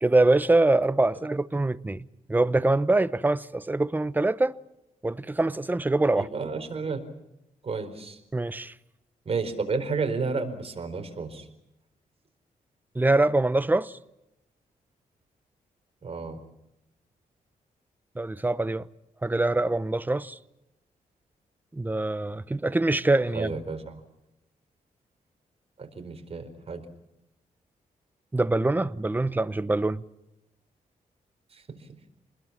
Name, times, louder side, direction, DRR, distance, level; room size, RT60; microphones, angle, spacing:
voice 1, 0.0-2.0 2.3-4.6 5.0-6.3 8.3-8.7 12.9-14.0 18.2-18.9 19.2-20.4 21.7-23.5 28.3-30.0, right 2 dB, 10° right, 0.8 m, -24 dB
voice 2, 6.1-7.0 7.6-8.2 9.2-11.5 16.0-16.4 23.3-24.0 25.8-26.8 31.5-31.9, right 4 dB, 40° right, 4.4 m, -32 dB
28.0 x 21.0 x 7.4 m
wide cardioid pair, 120°, 15 cm